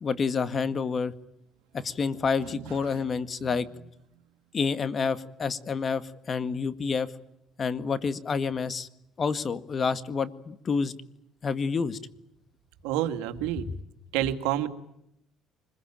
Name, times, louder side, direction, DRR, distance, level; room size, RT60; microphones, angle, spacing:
voice 1, 0.0-1.1 1.7-3.7 4.5-7.1 7.6-8.9 9.2-10.9 11.4-12.0 13.7-13.8, left 5 dB, 40° left, 12 dB, 1.9 m, -28 dB
voice 2, 12.8-13.7 14.1-14.7, right 12 dB, 90° right, 8 dB, 2.2 m, -28 dB
25.0 x 21.5 x 8.9 m, 0.79 s
supercardioid pair, 90°, 0 cm